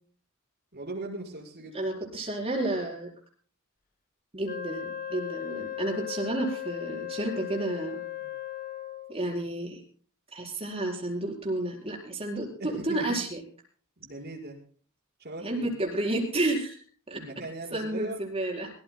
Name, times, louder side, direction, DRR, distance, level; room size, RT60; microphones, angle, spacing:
voice 1, 0.7-1.8 8.2-8.3 12.6-13.2 14.0-14.6 15.2-15.7 17.1-18.2, right 2 dB, 50° right, -1 dB, 5.4 m, -39 dB
voice 2, 1.7-3.1 4.3-8.0 9.1-9.8 10.3-13.4 15.4-16.7 17.1-17.2 17.7-18.7, right 1 dB, 30° right, 0 dB, 4.6 m, -31 dB
Wind instrument woodwind instrument, 4.4-9.2, left 12 dB, 45° left, 1.4 m, -37 dB
23.0 x 18.0 x 2.2 m, 0.43 s
head